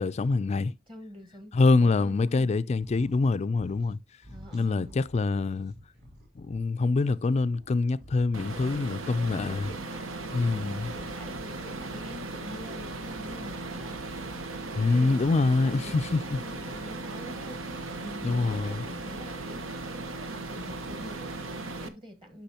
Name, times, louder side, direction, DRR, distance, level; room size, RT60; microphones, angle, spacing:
voice 1, 0.0-0.7 1.5-4.0 4.5-5.7 6.4-9.7 10.3-10.9 14.8-16.4 18.2-18.8, left 3 dB, 35° left, 0.3 m, -25 dB
voice 2, 0.9-2.6 4.3-5.0 9.0-10.2 10.5-14.1 14.9-22.4, equal, 25° right, 1.3 m, -46 dB
sound 1, 2.7-3.3 3.5-4.0 4.2-6.6 7.0-8.9 10.3-11.7 13.1-14.2, equal, 55° right, 3.0 m, -52 dB
sound 2, 8.3-21.9, right 2 dB, 90° right, 1.1 m, -37 dB
10.0 x 6.2 x 2.8 m
head